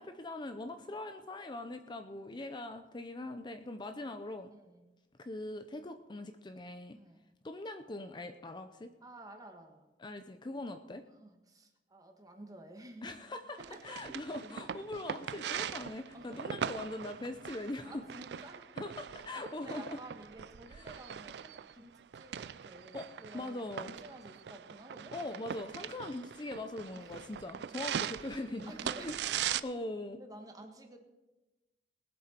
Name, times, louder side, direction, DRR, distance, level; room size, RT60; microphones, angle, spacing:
voice 1, 0.0-4.5 5.2-7.0 7.4-8.9 10.0-11.0 13.0-18.0 18.8-20.0 20.7-21.0 22.9-23.1 23.3-24.0 25.1-28.7 29.0-29.1 29.6-30.2, left 2 dB, 25° left, 8 dB, 0.6 m, -41 dB
voice 2, 4.5-5.0 6.9-7.2 9.0-9.9 11.2-13.1 13.6-14.0 14.4-14.7 16.1-16.4 17.8-18.7 19.3-25.1 26.9-27.1 28.7-29.6 30.1-31.0, right 1 dB, 20° right, 4 dB, 1.6 m, -52 dB
sound 1, 13.6-29.6, right 8 dB, 65° right, 0.4 m, -41 dB
20.5 x 7.7 x 4.4 m, 1.1 s
head